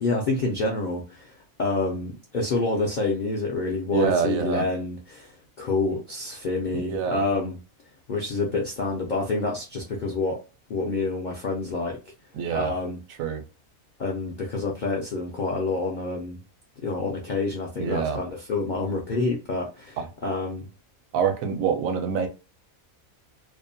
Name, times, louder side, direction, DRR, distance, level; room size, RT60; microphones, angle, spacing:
voice 1, 0.0-7.6 8.1-10.4 10.7-12.0 12.5-13.0 14.0-16.4 16.8-20.7, left 3 dB, 65° left, 0.4 m, -28 dB
voice 2, 3.9-4.7 6.7-7.2 12.3-12.7 13.2-13.4 17.8-18.2 20.0-20.1 21.1-22.3, right 7 dB, 75° right, 1.0 m, -26 dB
2.6 x 2.1 x 2.5 m
omnidirectional pair, 1.5 m